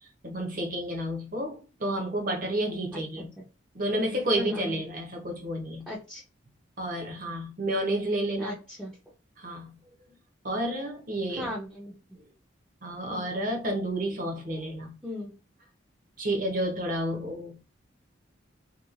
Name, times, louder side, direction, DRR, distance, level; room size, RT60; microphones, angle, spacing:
voice 1, 0.0-3.3 3.7-5.9 6.8-8.5 9.4-9.8 10.4-11.5 12.8-14.9 16.2-17.6, right 1 dB, 45° right, 0.7 m, -30 dB
voice 2, 2.9-3.3 4.0-4.7 5.9-6.2 8.4-8.9 11.3-11.9 13.1-13.2 15.0-15.3, left 1 dB, 5° right, 0.5 m, -37 dB
2.9 x 2.3 x 2.4 m
head